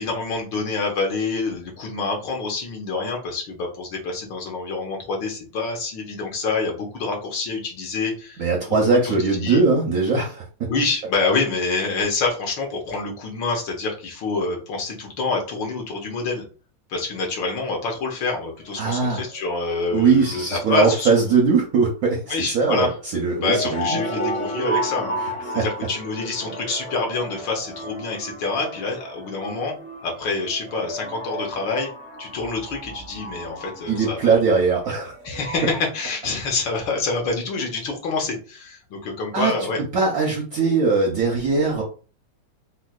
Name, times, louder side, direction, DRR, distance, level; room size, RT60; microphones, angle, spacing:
voice 1, 0.0-8.8 9.0-9.1 9.4-9.6 10.7-16.4 16.9-21.1 22.3-22.9 23.4-25.2 25.5-29.8 30.0-31.9 32.2-34.2 35.2-39.8, left 3 dB, 75° left, 1 dB, 1.6 m, -27 dB
voice 2, 8.4-10.5 18.8-19.2 19.9-24.0 25.2-25.7 33.9-35.1 39.3-41.8, right 4 dB, 65° right, -1 dB, 0.9 m, -20 dB
sound 1, 17.1-18.3 18.6-18.8 19.1-21.2 22.7-35.6, equal, 35° left, 1.1 m, -33 dB
4.3 x 2.2 x 2.3 m, 0.36 s
omnidirectional pair, 2.1 m